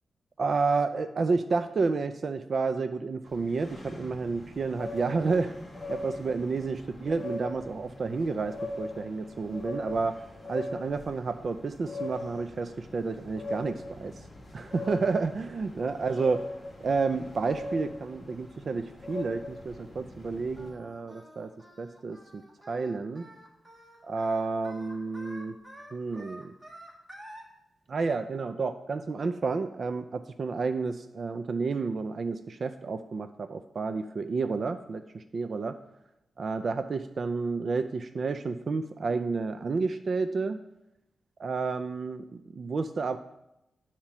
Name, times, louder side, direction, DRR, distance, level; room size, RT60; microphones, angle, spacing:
voice 1, 0.4-5.6 5.9-10.2 10.5-14.2 14.5-16.4 16.8-21.5 21.8-22.4 22.7-23.3 24.0-25.6 25.9-26.5 27.9-35.8 36.4-40.6 41.4-43.2, right 4 dB, 45° right, 8 dB, 0.4 m, -30 dB
sound 1, 3.3-20.7, left 2 dB, 20° left, 1.8 m, -41 dB
Singing, 20.6-27.4, right 1 dB, 15° right, 1.4 m, -49 dB
10.5 x 4.3 x 5.9 m, 0.87 s
wide cardioid pair, 150°, 0 cm